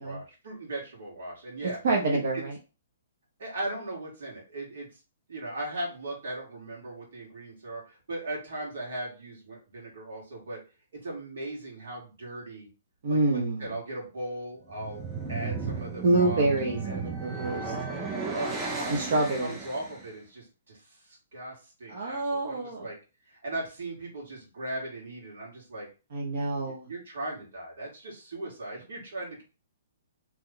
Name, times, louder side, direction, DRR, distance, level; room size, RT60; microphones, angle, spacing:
voice 1, 0.0-1.8 2.1-2.4 3.4-5.0 5.3-10.6 10.9-12.7 13.1-17.1 18.3-23.0 23.2-25.9 26.7-29.4, right 1 dB, 75° right, -2 dB, 1.7 m, -38 dB
voice 2, 1.8-2.5 13.0-13.7 16.0-17.7 18.9-19.5 21.9-22.9 26.1-26.9, right 2 dB, 50° right, -1 dB, 0.6 m, -27 dB
sound 1, 14.6-20.0, right 4 dB, 10° right, 0.4 m, -34 dB
2.9 x 2.2 x 3.7 m, 0.32 s
hypercardioid pair, 175°, 0 cm